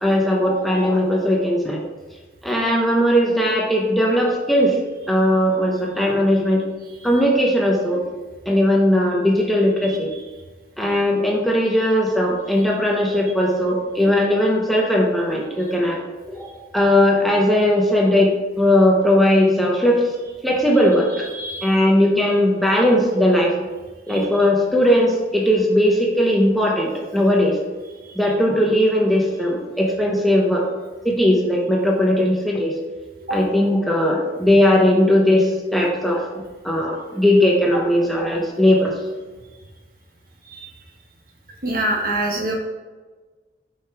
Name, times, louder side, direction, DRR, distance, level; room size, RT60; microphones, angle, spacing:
voice 1, 0.0-1.8 2.4-4.8 5.1-6.6 7.0-8.0 8.5-10.1 10.8-16.0 16.3-20.0 20.4-21.2 21.6-23.6 24.1-27.6 28.2-30.7 31.0-32.7 33.3-38.9, left 1 dB, ahead, -2 dB, 0.8 m, -18 dB
voice 2, 21.1-21.7 24.1-24.2 28.0-28.2 33.3-33.4 40.5-40.7 41.6-42.5, right 1 dB, 55° right, 0 dB, 1.3 m, -26 dB
6.2 x 5.3 x 4.7 m, 1.3 s
head